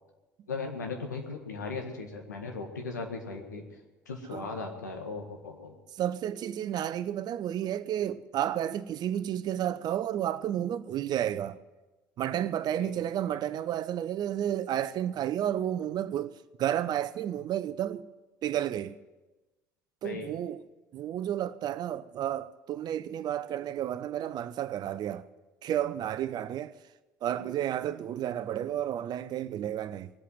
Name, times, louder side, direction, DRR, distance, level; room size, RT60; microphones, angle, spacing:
voice 1, 0.5-3.8 4.1-5.8 12.7-13.0 20.0-20.3, left 4 dB, 85° left, 1.8 m, -37 dB
voice 2, 6.0-11.6 12.2-18.0 18.4-18.9 20.0-20.6 20.9-25.2 25.6-26.7 27.2-30.1, right 11 dB, 50° right, 0.6 m, -31 dB
20.5 x 8.4 x 7.7 m
figure-of-eight pair, 60°, 9 cm